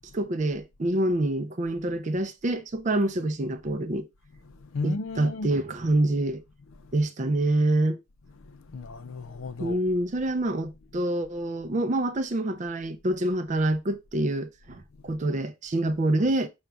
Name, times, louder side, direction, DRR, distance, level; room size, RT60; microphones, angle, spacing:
voice 1, 0.1-4.1 4.8-6.4 6.9-8.0 9.6-16.5, right 1 dB, 35° right, 0.4 m, -26 dB
voice 2, 4.4-5.5 6.7-7.0 8.3-9.8 15.0-15.2, left 3 dB, 70° left, 0.5 m, -36 dB
5.2 x 2.3 x 4.4 m
head